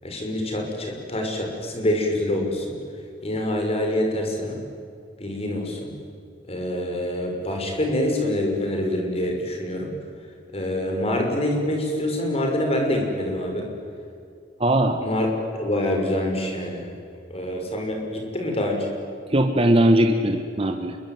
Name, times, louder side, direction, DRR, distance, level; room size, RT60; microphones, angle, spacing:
voice 1, 0.0-2.8 3.2-4.6 5.2-5.9 6.5-9.9 10.5-13.7 15.0-15.3 15.6-16.9 17.3-19.0, left 1 dB, 35° left, 2 dB, 5.9 m, -26 dB
voice 2, 14.6-15.0 19.3-21.0, right 1 dB, 35° right, 5 dB, 1.5 m, -19 dB
27.5 x 23.0 x 9.5 m, 2.4 s
head